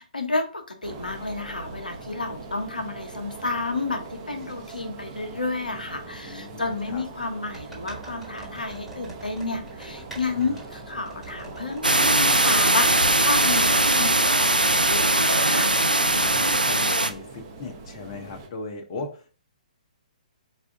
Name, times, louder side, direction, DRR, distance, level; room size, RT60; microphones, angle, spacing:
voice 1, 0.0-15.7, left 3 dB, 75° left, 6 dB, 0.7 m, -31 dB
sound 1, 0.8-18.5, right 3 dB, 30° right, 0.7 m, -41 dB
sound 2, 3.4-3.5 3.8-4.8 5.8-5.9 7.5-15.4 15.7-15.9 16.2-16.4, right 2 dB, ahead, 1.3 m, -47 dB
voice 2, 5.7-7.0 10.3-10.6 16.0-19.3, left 3 dB, 35° left, 4 dB, 0.6 m, -39 dB
sound 3, 11.8-17.1, right 2 dB, 85° right, 0.4 m, -20 dB
4.2 x 2.3 x 3.5 m, 0.38 s
figure-of-eight pair, 125°, 5 cm